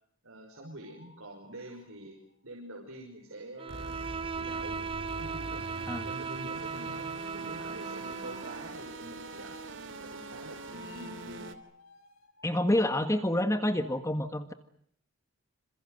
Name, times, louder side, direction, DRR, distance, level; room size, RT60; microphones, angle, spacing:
voice 1, 0.2-2.2 2.4-4.0 4.4-4.8 5.1-9.6 10.0-11.4, right 1 dB, 85° right, 1 dB, 5.6 m, -46 dB
sound 1, 0.5-2.3 3.4-13.9, left 2 dB, 85° left, 3.6 m, -56 dB
Bowed string instrument, 3.6-8.8, right 5 dB, 25° right, 1.0 m, -37 dB
sound 2, 3.7-11.6, right 2 dB, 65° right, 2.9 m, -43 dB
voice 2, 12.4-14.5, left 1 dB, 15° left, 8 dB, 1.5 m, -28 dB
27.5 x 27.5 x 6.6 m, 0.69 s
head